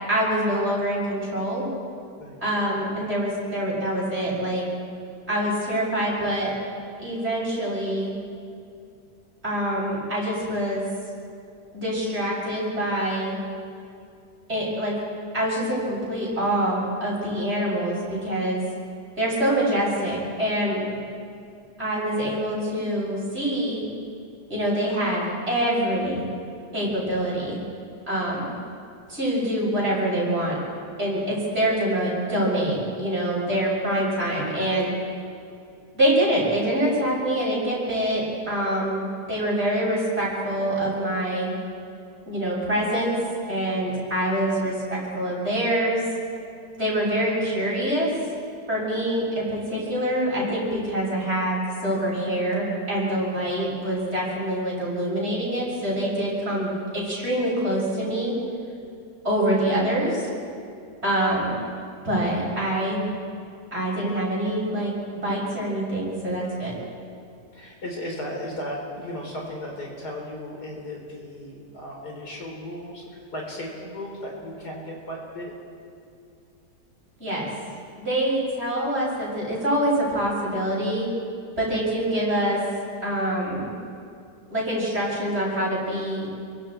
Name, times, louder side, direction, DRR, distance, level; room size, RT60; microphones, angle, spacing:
voice 1, 0.1-1.7 2.4-4.6 5.3-6.5 7.0-8.2 9.4-10.9 11.7-13.4 14.5-14.9 15.3-18.6 19.2-20.8 21.8-23.8 24.5-26.2 26.7-27.6 28.1-28.5 29.1-30.6 31.0-34.9 35.9-41.5 42.3-43.2 43.5-46.0 46.8-48.1 48.7-58.3 59.2-60.3 61.0-61.6 62.0-63.0 63.7-66.8 77.2-77.5 78.0-81.1 81.6-82.6 83.0-83.7 84.5-86.3, right 1 dB, 40° right, -5 dB, 7.2 m, -25 dB
voice 2, 53.3-53.7 66.8-66.9 67.5-75.5 81.7-81.9, left 1 dB, 70° left, -1 dB, 4.3 m, -36 dB
27.5 x 24.0 x 4.5 m, 2.5 s
omnidirectional pair, 1.8 m